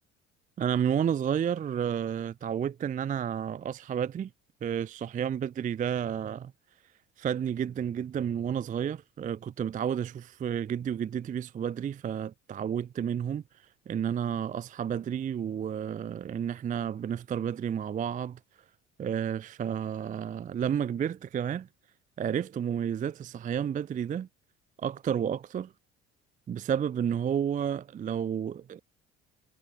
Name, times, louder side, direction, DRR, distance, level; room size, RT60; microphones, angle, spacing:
voice 1, 0.6-4.3 4.6-6.5 7.2-13.4 13.9-18.4 19.0-21.7 22.2-24.3 24.8-25.7 26.5-28.8, right 8 dB, 25° right, 0.4 m, -31 dB
figure-of-eight pair, 55°, 36 cm